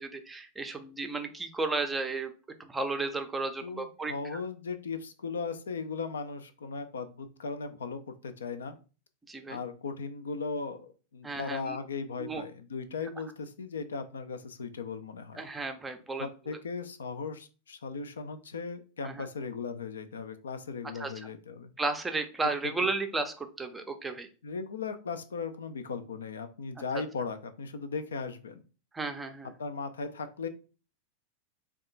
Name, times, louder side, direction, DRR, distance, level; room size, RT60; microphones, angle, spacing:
voice 1, 0.0-2.3 2.6-4.4 9.3-9.6 11.2-11.8 12.2-12.4 15.4-16.6 19.0-19.3 21.0-21.1 21.8-24.3 28.9-29.5, right 3 dB, 10° right, 6 dB, 0.5 m, -34 dB
voice 2, 3.6-8.8 9.5-15.4 16.2-21.7 22.8-22.9 24.4-28.6 29.6-30.5, left 5 dB, 70° left, 9 dB, 0.4 m, -37 dB
3.5 x 2.3 x 3.8 m, 0.35 s
figure-of-eight pair, 90°, 0 cm